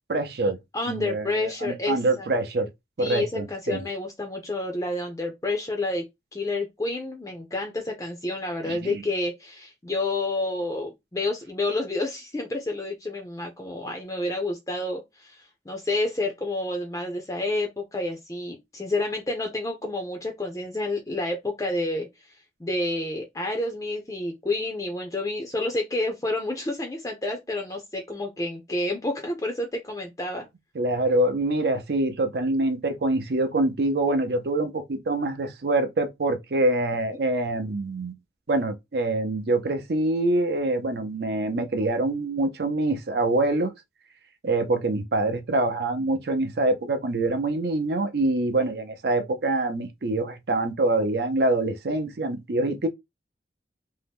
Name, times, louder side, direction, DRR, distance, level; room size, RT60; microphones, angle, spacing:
voice 1, 0.1-0.6 0.8-2.7 3.0-3.8 8.6-9.0 30.8-38.1 38.5-43.7 44.4-52.9, right 2 dB, 65° right, 0.5 m, -25 dB
voice 2, 0.7-2.3 3.0-6.0 6.3-22.3 22.6-30.5, left 2 dB, 20° left, 0.5 m, -29 dB
2.7 x 2.1 x 3.3 m
head